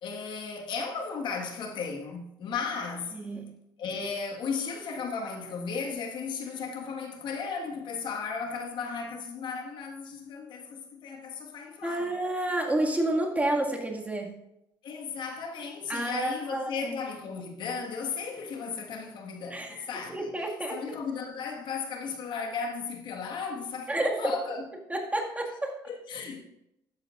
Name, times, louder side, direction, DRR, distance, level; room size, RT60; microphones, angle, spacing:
voice 1, 0.0-3.2 3.8-12.1 14.8-20.4 20.7-24.6 25.9-26.4, left 5 dB, 65° left, 1.6 m, -35 dB
voice 2, 3.1-3.5 11.8-14.3 15.9-16.9 19.5-20.8 23.9-24.5 24.9-25.7, right 1 dB, 15° right, 1.9 m, -30 dB
13.0 x 9.6 x 2.5 m
supercardioid pair, 75°, 9 cm